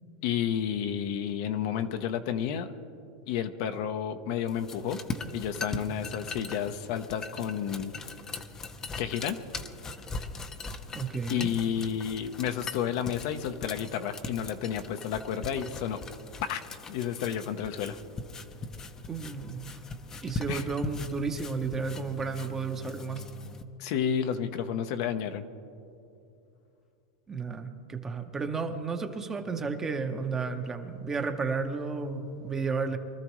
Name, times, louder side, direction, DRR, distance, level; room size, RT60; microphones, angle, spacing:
voice 1, 0.2-2.7 3.3-5.0 5.3-7.9 9.0-9.4 11.3-16.0 16.4-18.0 20.5-20.7 23.8-25.4, left 9 dB, 60° left, 8 dB, 0.8 m, -31 dB
sound 1, 4.5-23.6, left 3 dB, 20° left, 0.7 m, -40 dB
voice 2, 10.9-11.5 19.1-19.8 20.2-23.2 27.3-33.0, right 4 dB, 15° right, 6 dB, 0.9 m, -32 dB
24.0 x 13.0 x 3.1 m, 2.6 s
supercardioid pair, 140°, 3 cm